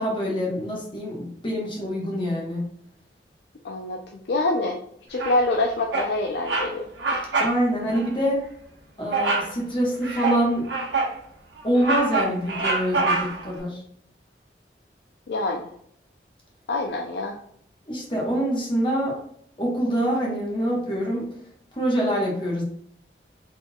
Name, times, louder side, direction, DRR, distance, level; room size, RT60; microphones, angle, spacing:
voice 1, 0.0-2.6 7.4-8.4 9.0-10.7 11.6-13.8 17.9-19.2 19.6-21.2 21.8-22.6, equal, 30° left, -3 dB, 1.1 m, -25 dB
voice 2, 3.6-4.0 4.3-4.8 5.1-7.5 15.3-15.7 16.7-17.4, left 2 dB, 70° left, 1 dB, 0.4 m, -26 dB
Bird vocalization bird call bird song, 5.2-5.6 5.9-6.1 6.4-6.7 7.0-7.6 7.9-8.1 9.1-9.5 10.0-11.2 11.6-13.5, right 3 dB, 85° right, 1.0 m, -25 dB
4.2 x 3.7 x 2.3 m, 0.68 s
head